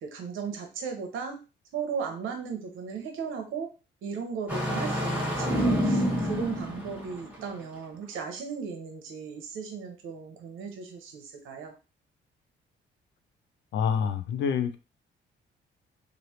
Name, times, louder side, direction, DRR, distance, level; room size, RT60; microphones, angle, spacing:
voice 1, 0.0-1.4 1.7-3.7 4.0-11.7, right 6 dB, 85° right, 4 dB, 0.9 m, -36 dB
Engine starting, 4.5-7.5, equal, 5° right, 1.2 m, -27 dB
voice 2, 13.7-14.8, left 7 dB, 65° left, 8 dB, 0.5 m, -27 dB
3.2 x 2.6 x 2.8 m, 0.32 s
cardioid pair, 90°, 20 cm